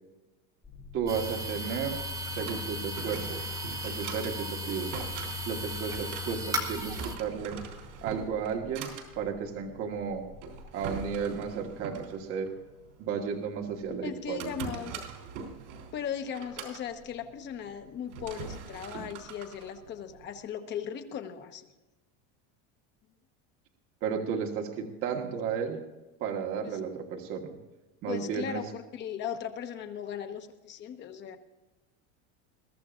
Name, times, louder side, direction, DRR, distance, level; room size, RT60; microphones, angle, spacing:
sound 1, 0.6-11.9, left 2 dB, 15° left, 3.1 m, -52 dB
voice 1, 0.9-2.0 2.4-3.5 3.8-4.9 5.5-7.6 8.0-10.3 10.7-12.5 13.0-14.7 24.0-25.8 26.2-27.6 28.0-28.6, right 6 dB, 40° right, 2 dB, 1.6 m, -33 dB
sound 2, 1.1-7.2, equal, 10° right, 1.4 m, -35 dB
Drawer open or close, 2.0-20.5, right 6 dB, 90° right, 3.5 m, -44 dB
voice 2, 14.0-15.0 15.9-21.7 26.6-26.8 28.1-31.4, left 8 dB, 30° left, 7 dB, 1.2 m, -38 dB
21.5 x 13.5 x 2.5 m, 1.1 s
cardioid pair, 165°, 36 cm